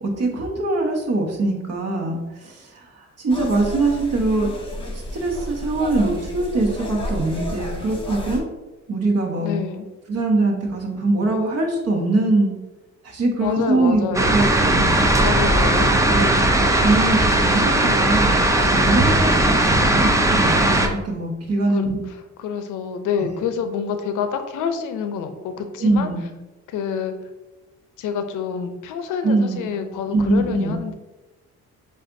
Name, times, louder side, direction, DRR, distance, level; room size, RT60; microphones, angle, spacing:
voice 1, 0.0-4.5 5.1-8.5 8.9-9.5 10.1-12.5 13.0-15.2 16.1-16.3 16.8-22.0 25.8-26.2 29.2-29.7 30.1-30.8, right 2 dB, 55° right, 1 dB, 1.2 m, -22 dB
sound 1, 3.3-8.4, left 1 dB, 15° left, 1.1 m, -31 dB
voice 2, 9.4-9.9 13.4-14.3 15.2-16.1 21.7-26.1 26.7-27.1 28.0-30.9, left 6 dB, 85° left, 8 dB, 0.6 m, -27 dB
sound 2, 14.1-20.9, right 1 dB, 10° right, 0.5 m, -18 dB
7.4 x 2.5 x 2.6 m, 1.1 s
cardioid pair, 90°, 30 cm